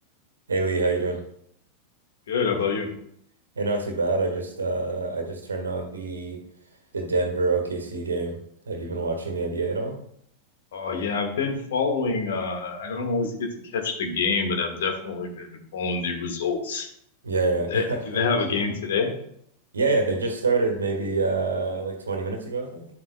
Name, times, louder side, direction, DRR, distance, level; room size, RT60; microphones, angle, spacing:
voice 1, 0.5-1.2 3.5-6.4 6.9-8.4 8.7-10.0 17.2-18.0 19.7-22.9, right 3 dB, 75° right, 4 dB, 1.5 m, -26 dB
voice 2, 2.3-2.9 10.7-16.9 17.7-19.1, left 4 dB, 60° left, 4 dB, 1.6 m, -26 dB
11.0 x 7.6 x 2.2 m, 0.70 s
figure-of-eight pair, 90°, 0 cm